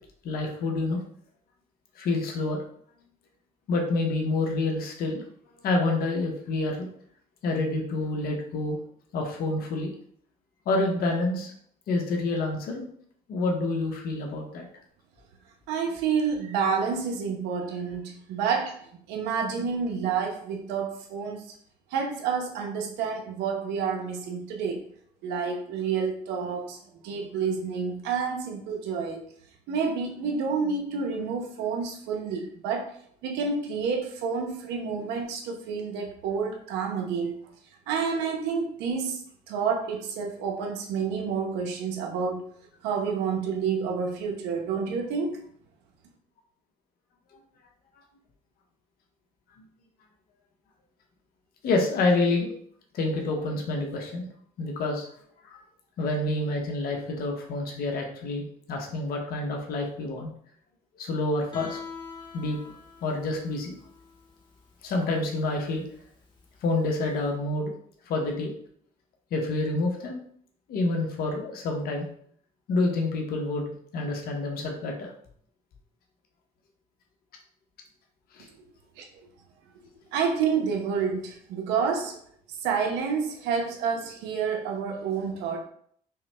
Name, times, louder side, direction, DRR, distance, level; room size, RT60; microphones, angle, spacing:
voice 1, 0.2-1.0 2.0-2.6 3.7-5.2 5.6-6.9 7.4-8.8 9.1-9.9 10.7-11.5 11.9-12.9 13.3-14.6 51.6-52.5 52.9-54.3 54.6-55.1 55.5-55.6 56.0-60.3 61.0-61.8 62.3-62.6 63.0-63.7 64.8-65.8 66.6-67.7 68.1-68.5 69.3-70.2 70.7-72.1 72.7-75.1 78.3-78.5, left 2 dB, 65° left, 1 dB, 0.9 m, -28 dB
voice 2, 15.7-21.5 21.9-24.8 25.2-26.8 27.0-29.3 29.7-33.0 33.2-37.4 37.9-39.2 39.5-42.4 42.8-45.4 79.0-79.1 80.1-82.2 82.5-85.6, right 6 dB, 90° right, 2 dB, 0.8 m, -29 dB
Guitar, 61.5-67.2, left 4 dB, 25° left, 1.2 m, -45 dB
5.5 x 2.1 x 3.3 m, 0.63 s
cardioid pair, 110°, 17 cm